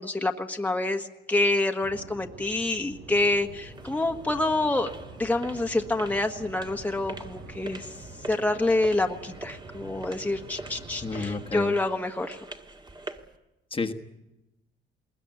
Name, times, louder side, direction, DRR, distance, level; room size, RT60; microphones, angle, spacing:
voice 1, 0.0-4.9 5.2-7.9 8.3-12.4, left 2 dB, 10° left, 3 dB, 1.5 m, -27 dB
sound 1, 1.8-11.5, right 3 dB, 85° right, 5.5 m, -46 dB
sound 2, 3.1-13.4, right 2 dB, 20° right, 1.8 m, -45 dB
voice 2, 11.0-11.8 13.7-13.9, left 4 dB, 25° left, 3 dB, 1.5 m, -30 dB
21.0 x 19.5 x 9.3 m, 0.97 s
cardioid pair, 90°, 20 cm